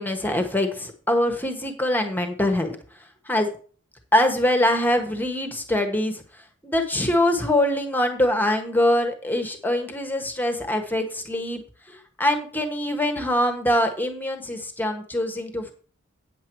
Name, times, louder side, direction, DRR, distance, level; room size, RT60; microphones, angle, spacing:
voice 1, 0.0-2.8 3.2-3.5 4.1-11.6 11.9-15.7, left 1 dB, 10° left, 5 dB, 1.2 m, -23 dB
8.9 x 7.5 x 4.6 m, 0.41 s
head